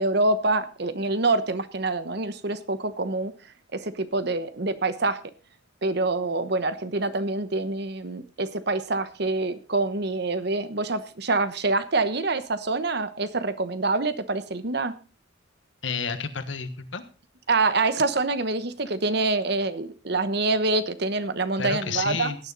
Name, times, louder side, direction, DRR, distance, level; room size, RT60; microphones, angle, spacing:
voice 1, 0.0-3.3 3.7-5.2 5.8-14.9 17.5-22.3, right 3 dB, 55° right, 12 dB, 1.1 m, -26 dB
voice 2, 15.8-17.0 21.6-22.4, left 5 dB, 75° left, 9 dB, 1.5 m, -30 dB
17.0 x 9.8 x 4.0 m, 0.35 s
head